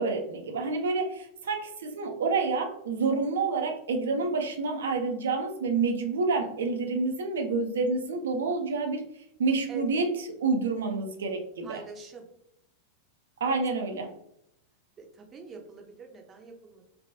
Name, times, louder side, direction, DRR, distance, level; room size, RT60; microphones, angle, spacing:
voice 1, 0.0-9.0 9.4-10.1 10.4-11.8 13.4-14.1, right 4 dB, 65° right, 4 dB, 0.5 m, -28 dB
voice 2, 9.7-10.0 11.6-12.3 15.0-16.8, right 5 dB, 25° right, 2 dB, 0.7 m, -44 dB
3.3 x 2.5 x 2.6 m, 0.75 s
figure-of-eight pair, 90°, 0 cm